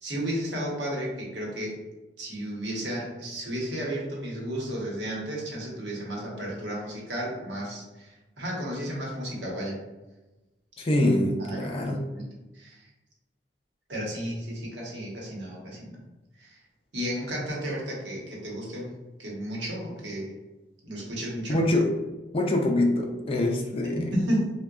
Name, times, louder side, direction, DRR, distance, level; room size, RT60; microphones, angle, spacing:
voice 1, 0.0-1.8 2.2-9.8 11.4-12.3 12.5-12.9 13.9-16.0 16.4-16.6 16.9-18.9 19.2-20.3 20.8-21.6 23.8-24.5, equal, 75° right, -3 dB, 0.9 m, -33 dB
voice 2, 10.8-12.0 21.5-21.9 22.3-24.1, left 1 dB, 35° left, 1 dB, 0.4 m, -24 dB
3.8 x 2.2 x 2.3 m, 1.1 s
head